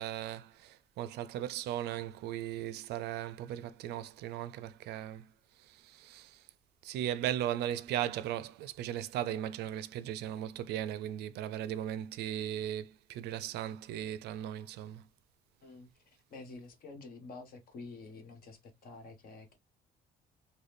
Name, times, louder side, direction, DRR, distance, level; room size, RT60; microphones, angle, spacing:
voice 1, 0.0-5.3 5.7-6.4 6.8-15.0, right 11 dB, 75° right, 0.4 m, -37 dB
voice 2, 15.6-19.6, left 3 dB, 60° left, 1.4 m, -49 dB
3.9 x 2.2 x 3.3 m
cardioid pair, 110°, 17 cm